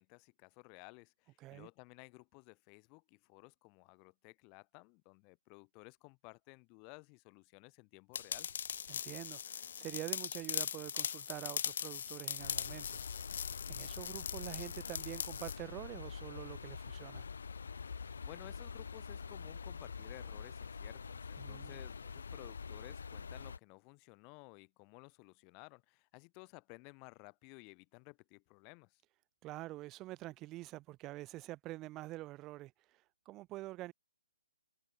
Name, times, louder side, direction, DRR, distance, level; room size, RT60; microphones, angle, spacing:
voice 1, 0.0-8.5 17.8-29.0, left 35 dB, 15° left, 3.4 m, -56 dB
voice 2, 1.4-1.7 8.9-17.3 21.4-21.8 29.4-33.9, right 18 dB, 10° right, 0.6 m, -47 dB
sound 1, 8.1-15.6, left 8 dB, 40° left, 0.3 m, -40 dB
sound 2, 12.4-23.6, left 5 dB, 60° left, 1.0 m, -46 dB
hypercardioid pair, 180°, 0 cm